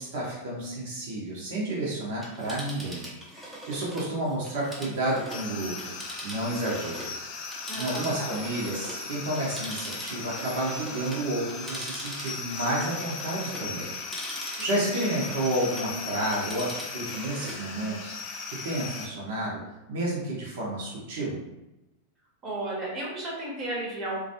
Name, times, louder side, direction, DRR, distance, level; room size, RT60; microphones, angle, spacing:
voice 1, 0.0-3.0 3.3-5.7 6.2-7.1 7.7-13.9 14.2-19.5 19.9-21.4, right 1 dB, 55° right, -5 dB, 0.7 m, -31 dB
Telephone, 2.1-7.2 7.5-15.9 16.2-17.6 18.0-18.1, equal, 5° right, 0.7 m, -42 dB
sound 1, 5.3-19.1, left 4 dB, 40° left, 0.4 m, -38 dB
voice 2, 7.7-8.4 14.6-15.1 22.4-24.2, right 1 dB, 25° right, -4 dB, 0.9 m, -34 dB
2.4 x 2.2 x 2.7 m, 0.96 s
figure-of-eight pair, 90°, 0 cm